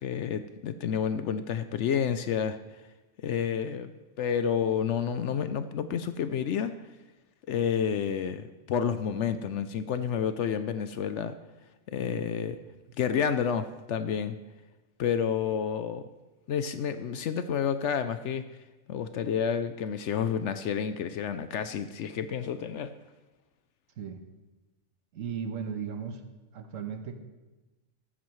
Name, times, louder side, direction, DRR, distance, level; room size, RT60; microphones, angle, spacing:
voice 1, 0.0-2.6 3.2-3.9 4.2-6.7 7.5-11.3 11.9-12.6 13.0-14.3 15.0-16.0 16.5-18.4 18.9-22.9, left 7 dB, 70° left, 11 dB, 0.8 m, -29 dB
voice 2, 25.1-26.2 26.5-27.1, right 7 dB, 75° right, 7 dB, 1.4 m, -36 dB
14.5 x 12.5 x 3.1 m, 1.1 s
omnidirectional pair, 1.4 m